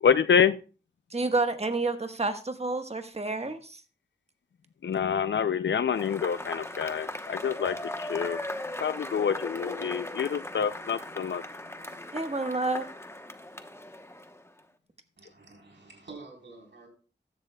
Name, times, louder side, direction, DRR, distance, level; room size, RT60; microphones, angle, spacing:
voice 1, 0.0-0.6 4.8-8.4 8.8-11.4, left 7 dB, 80° left, 14 dB, 0.4 m, -27 dB
voice 2, 1.1-3.8 12.1-12.8, right 3 dB, 35° right, 7 dB, 1.3 m, -29 dB
Cheering / Applause / Crowd, 5.9-14.6, left 1 dB, 15° left, 1.0 m, -38 dB
voice 3, 15.2-16.9, right 3 dB, 80° right, 1 dB, 3.9 m, -48 dB
15.0 x 11.0 x 2.3 m, 0.35 s
wide cardioid pair, 85°, 19 cm